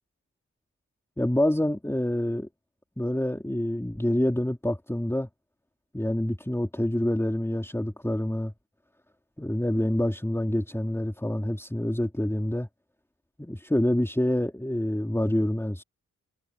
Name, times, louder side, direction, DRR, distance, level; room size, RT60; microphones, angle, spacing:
voice 1, 1.2-2.5 3.0-5.3 5.9-8.5 9.4-12.7 13.4-15.8, left 1 dB, 5° left, 3.5 m, -27 dB
cardioid pair, 70°, 34 cm